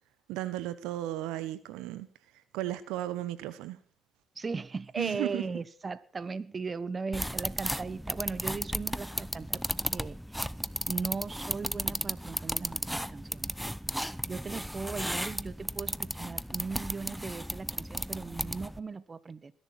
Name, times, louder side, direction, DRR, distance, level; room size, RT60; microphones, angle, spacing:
voice 1, 0.3-2.1 2.5-3.8 5.0-5.4, right 14 dB, 85° right, 16 dB, 1.1 m, -34 dB
voice 2, 4.3-9.6 9.9-10.4 10.9-13.5 14.3-19.5, right 4 dB, 35° right, 18 dB, 1.1 m, -38 dB
sound 1, 7.1-18.8, equal, ahead, 0.7 m, -35 dB
20.5 x 11.0 x 6.0 m, 0.42 s
supercardioid pair, 70°, 0 cm